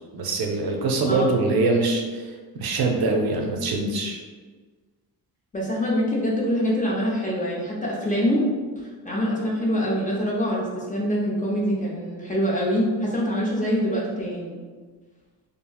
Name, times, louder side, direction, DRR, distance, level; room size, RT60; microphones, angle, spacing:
voice 1, 0.1-2.3 2.6-4.2, right 3 dB, 60° right, 1 dB, 0.5 m, -23 dB
voice 2, 5.5-8.4 8.8-14.6, equal, 20° left, -4 dB, 0.4 m, -25 dB
2.9 x 2.6 x 2.2 m, 1.4 s
cardioid pair, 120°, 41 cm